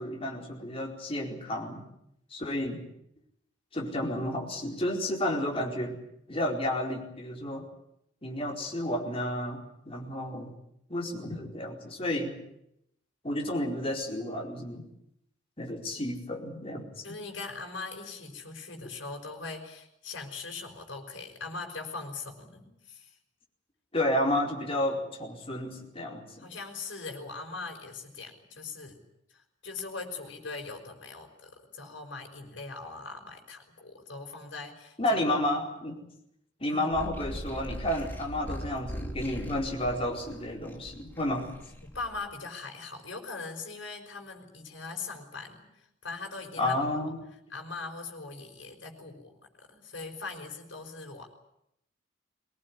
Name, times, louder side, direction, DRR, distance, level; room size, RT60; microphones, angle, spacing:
voice 1, 0.0-1.9 2.3-2.8 3.7-6.0 6.3-7.6 8.2-10.5 10.9-12.4 13.2-14.8 15.6-17.0 23.9-26.2 35.0-36.0 36.6-41.5 46.6-47.2, left 1 dB, 30° left, 0 dB, 4.5 m, -31 dB
voice 2, 17.0-23.2 26.4-29.0 29.3-35.2 36.7-36.9 41.4-41.5 41.8-46.9 47.5-51.3, left 3 dB, 65° left, 4 dB, 5.2 m, -41 dB
sound 1, 36.9-42.2, equal, 10° left, 2.4 m, -41 dB
23.0 x 19.5 x 9.9 m, 0.78 s
head